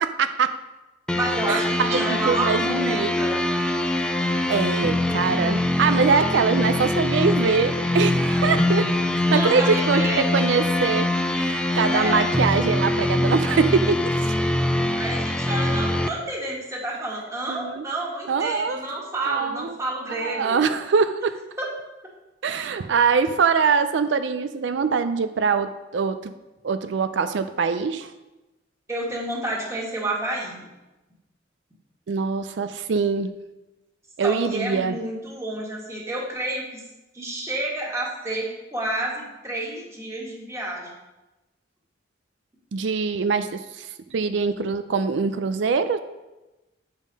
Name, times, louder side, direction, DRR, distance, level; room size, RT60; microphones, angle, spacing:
voice 1, 0.2-0.5 1.5-3.1 4.5-8.9 9.3-11.1 11.3-14.3 17.5-17.8 18.3-18.8 19.3-19.7 20.2-21.4 22.4-26.3 26.6-28.1 32.1-33.3 34.2-35.0 42.7-43.9 44.1-46.0, right 5 dB, 75° right, 10 dB, 0.4 m, -23 dB
sound 1, 1.1-16.1, left 1 dB, 5° left, 0.4 m, -23 dB
voice 2, 1.1-3.4 9.3-10.2 11.9-12.3 14.9-20.6 21.6-21.7 28.9-30.6 34.2-36.8 37.1-40.9, right 1 dB, 15° right, -3 dB, 1.7 m, -29 dB
7.4 x 5.2 x 5.3 m, 1.0 s
head